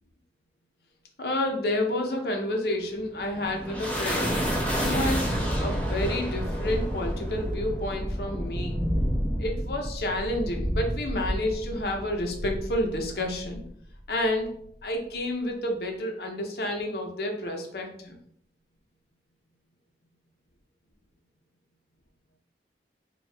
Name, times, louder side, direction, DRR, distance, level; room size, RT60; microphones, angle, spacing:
voice 1, 1.2-4.4 4.8-8.8 9.4-13.6 14.1-14.5 14.8-18.1, left 1 dB, 60° left, 2 dB, 0.7 m, -30 dB
sound 1, 2.9-13.7, equal, 10° left, 0.9 m, -29 dB
4.5 x 2.3 x 3.3 m, 0.70 s
head